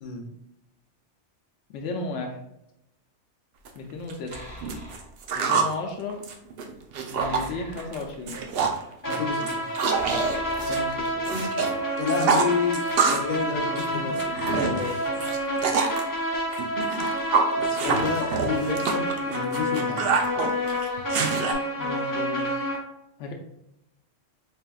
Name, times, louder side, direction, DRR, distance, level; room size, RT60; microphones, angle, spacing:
voice 1, 1.7-2.4 3.7-4.3 5.3-6.2 7.1-8.4 10.6-11.4 13.4-13.6 13.9-15.5 20.9-21.1 21.8-22.7 23.2-23.3, left 3 dB, 90° left, 2 dB, 0.9 m, -35 dB
sound 1, 3.7-3.8 4.1-5.7 6.1-7.5 7.8-8.0 8.3-8.8 9.1-11.7 12.0-13.3 13.6-16.0 16.5-21.5, right 5 dB, 65° right, 0.7 m, -26 dB
sound 2, 4.3-5.2 7.2-8.7 9.9-11.4, equal, 15° right, 1.5 m, -43 dB
sound 3, 9.0-22.8, equal, 20° left, 0.8 m, -29 dB
voice 2, 9.1-9.6 12.0-14.0 15.6-15.7 17.6-20.2, left 5 dB, 50° left, 2 dB, 0.7 m, -30 dB
4.3 x 3.3 x 2.3 m, 0.83 s
omnidirectional pair, 1.2 m